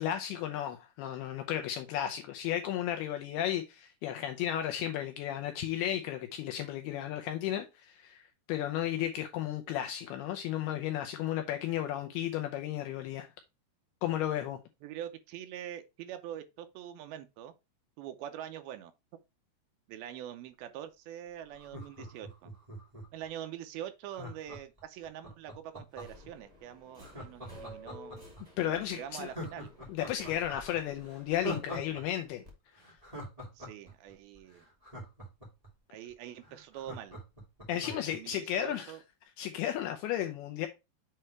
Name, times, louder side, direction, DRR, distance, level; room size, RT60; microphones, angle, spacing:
voice 1, 0.0-8.2 8.5-13.3 14.0-14.6 28.6-29.3 29.9-32.4 37.7-38.9 39.4-40.7, left 11 dB, 80° left, 2.5 m, -34 dB
voice 2, 14.8-17.5 18.0-18.9 19.9-22.5 23.1-28.2 28.6-29.7 33.6-34.6 35.9-37.2 37.7-39.0, right 11 dB, 80° right, 2.3 m, -44 dB
Laughter, 21.5-23.2 24.1-26.3 27.0-28.4 28.8-28.9 29.2-32.0 32.3-32.4 32.8-35.7 36.1-36.2 36.4-38.2 38.5-38.6, equal, 15° right, 1.2 m, -43 dB
Subway metro underground, 25.9-32.5, equal, 50° right, 0.4 m, -54 dB
7.7 x 3.2 x 4.5 m
omnidirectional pair, 4.8 m